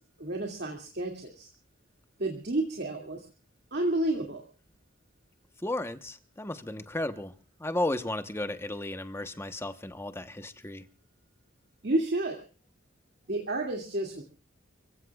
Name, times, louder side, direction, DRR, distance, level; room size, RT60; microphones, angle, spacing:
voice 1, 0.2-1.5 2.2-3.2 3.7-4.4 11.8-12.4 13.3-14.2, right 1 dB, 55° right, 2.3 m, -30 dB
voice 2, 5.6-7.3 7.6-10.9, left 1 dB, 15° left, 1.0 m, -34 dB
29.5 x 16.0 x 2.4 m
head